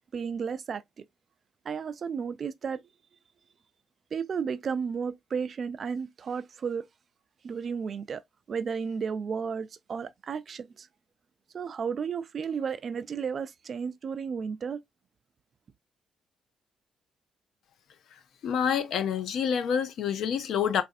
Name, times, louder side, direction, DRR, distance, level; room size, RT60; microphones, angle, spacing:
voice 1, 0.1-0.8 1.6-2.8 4.1-6.9 7.4-8.2 8.5-10.9 11.5-14.8, right 6 dB, 45° right, 0.4 m, -33 dB
voice 2, 18.4-20.8, left 7 dB, 75° left, 0.5 m, -27 dB
4.0 x 2.5 x 2.5 m
cardioid pair, 110°, 0 cm